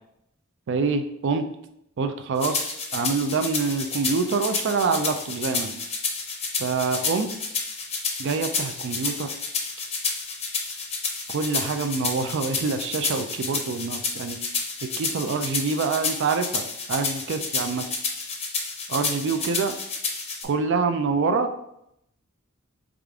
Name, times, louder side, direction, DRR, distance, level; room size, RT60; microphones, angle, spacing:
voice 1, 0.7-1.5 2.0-5.8 6.6-7.3 8.2-9.3 11.3-14.4 14.8-17.9 18.9-19.7 20.4-21.5, right 4 dB, 60° right, 8 dB, 0.4 m, -26 dB
sound 1, 2.4-20.4, left 4 dB, 30° left, 0.6 m, -30 dB
4.9 x 2.4 x 3.5 m, 0.78 s
head